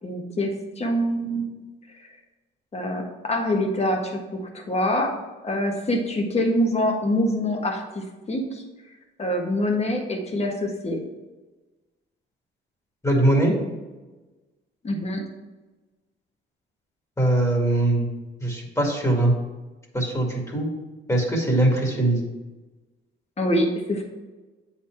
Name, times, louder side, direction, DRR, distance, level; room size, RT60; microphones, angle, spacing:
voice 1, 0.0-1.5 2.7-5.1 5.4-8.6 9.2-11.0 14.8-15.3 23.4-24.0, left 1 dB, 30° left, 2 dB, 1.6 m, -25 dB
voice 2, 13.0-13.5 17.2-18.1 18.4-19.3 19.9-20.7 21.1-22.2, right 1 dB, 15° left, -1 dB, 2.1 m, -21 dB
8.1 x 4.3 x 4.6 m, 1.2 s
cardioid pair, 90°, 20 cm